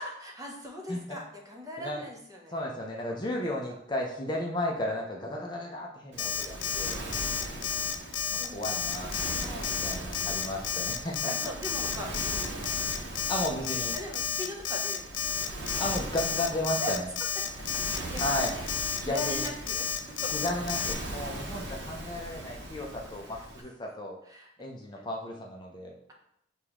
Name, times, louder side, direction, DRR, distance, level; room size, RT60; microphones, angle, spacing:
voice 1, 0.0-2.6 3.1-3.4 7.1-7.7 8.3-8.7 9.1-9.8 11.2-12.6 13.9-15.1 16.8-16.9 17.6-18.7 19.0-20.6 23.3-23.4 24.3-24.5 24.9-25.0, left 1 dB, 20° right, 0 dB, 0.7 m, -41 dB
voice 2, 2.5-7.0 8.3-9.1 9.6-11.3 13.3-14.0 15.8-17.1 18.2-18.5 19.0-19.5 20.3-24.2 24.6-26.0, left 1 dB, 25° left, -1 dB, 0.5 m, -34 dB
Waves surf, 6.1-23.6, right 1 dB, 65° right, 0.8 m, -40 dB
Alarm, 6.2-20.9, left 8 dB, 80° left, 0.4 m, -31 dB
6.8 x 2.3 x 3.0 m, 0.71 s
head